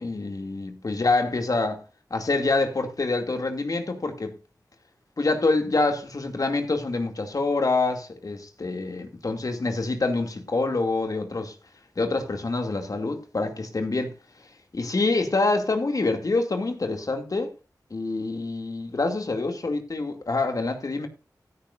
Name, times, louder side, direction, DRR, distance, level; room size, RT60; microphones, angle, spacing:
voice 1, 0.0-1.8 2.1-4.3 5.2-11.5 12.0-14.1 14.7-17.5 17.9-21.1, left 3 dB, 60° left, 2.5 m, -26 dB
16.0 x 9.8 x 2.6 m
wide cardioid pair, 55°, 7 cm